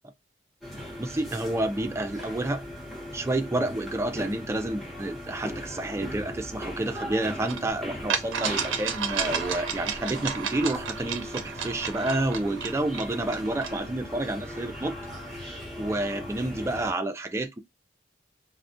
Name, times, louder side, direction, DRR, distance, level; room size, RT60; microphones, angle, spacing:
sound 1, 0.6-16.9, left 1 dB, ahead, 0.8 m, -39 dB
voice 1, 0.8-2.6 3.1-15.0 15.2-17.6, right 2 dB, 15° right, 0.3 m, -29 dB
sound 2, 7.5-7.6 8.1-13.8, right 7 dB, 85° right, 0.4 m, -32 dB
2.3 x 2.1 x 2.5 m
head